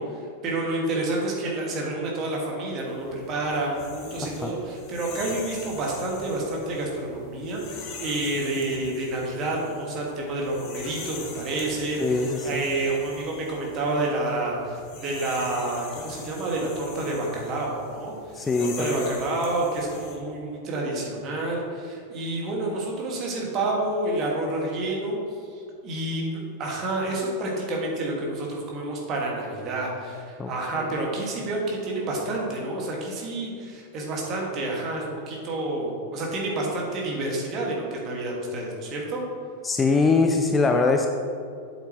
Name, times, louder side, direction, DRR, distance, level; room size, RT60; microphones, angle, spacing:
voice 1, 0.0-39.2, right 2 dB, 35° right, -2 dB, 2.0 m, -29 dB
sound 1, 2.9-20.2, left 4 dB, 40° left, 1.2 m, -43 dB
voice 2, 12.0-12.4 18.4-19.1 30.4-30.5 39.6-41.1, left 3 dB, 15° left, 4 dB, 0.5 m, -22 dB
8.1 x 8.0 x 3.1 m, 2.4 s
figure-of-eight pair, 90°, 0 cm